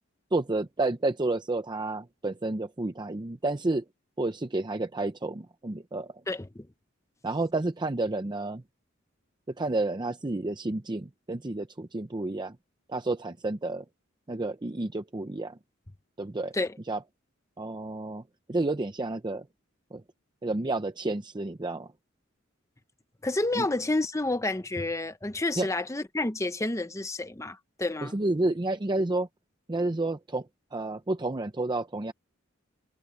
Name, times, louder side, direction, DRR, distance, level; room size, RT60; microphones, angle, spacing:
voice 1, 0.3-3.8 4.2-6.1 7.2-8.6 9.6-12.6 12.9-13.8 14.3-15.6 16.2-16.5 16.9-17.0 17.6-18.2 18.5-19.4 19.9-20.0 20.4-21.9 23.6-23.7 25.6-25.7 28.0-29.3 29.7-30.4 30.7-32.1, right 2 dB, 20° right, 0.6 m, -30 dB
voice 2, 6.3-6.7 16.5-16.8 23.2-28.2, left 2 dB, 15° left, 0.8 m, -30 dB
head